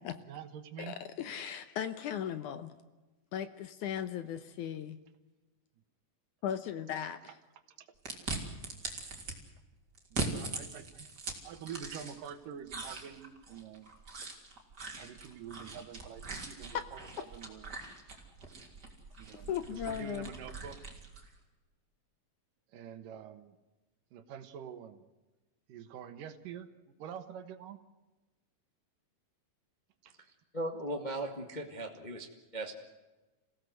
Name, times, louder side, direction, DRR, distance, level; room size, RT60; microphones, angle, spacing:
voice 1, 0.2-1.0 7.3-7.4 7.8-7.9 10.4-11.1 11.4-13.9 14.2-14.3 15.0-17.8 19.2-20.8 22.7-23.6 24.1-25.0 25.7-26.7 27.0-27.8 30.0-30.1, right 8 dB, 70° right, 10 dB, 2.8 m, -46 dB
voice 2, 0.8-2.7 3.3-5.0 6.4-7.3 16.7-16.8 19.5-20.3, left 9 dB, 70° left, 11 dB, 2.1 m, -37 dB
sound 1, 8.1-9.4 10.0-12.3 12.7-21.3, right 3 dB, 30° right, 3.6 m, -41 dB
voice 3, 30.5-32.3 32.5-32.7, right 1 dB, 25° left, 3 dB, 1.0 m, -37 dB
27.0 x 17.0 x 8.0 m, 1.1 s
omnidirectional pair, 4.2 m